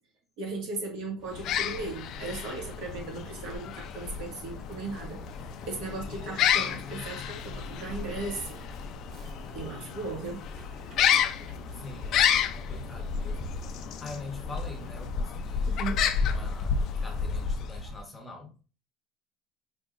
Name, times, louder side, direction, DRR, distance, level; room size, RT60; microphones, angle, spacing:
voice 1, 0.4-5.2 5.7-8.6 9.5-10.4 15.7-16.0, right 3 dB, 70° right, 1.6 m, -37 dB
sound 1, 1.3-18.0, left 7 dB, 50° left, 0.4 m, -31 dB
sound 2, 5.0-15.1, right 1 dB, 45° right, 1.4 m, -51 dB
voice 2, 11.7-13.6 14.0-15.8 16.3-18.5, left 2 dB, 15° left, 0.7 m, -44 dB
4.9 x 2.7 x 2.4 m
cardioid pair, 140°, 0 cm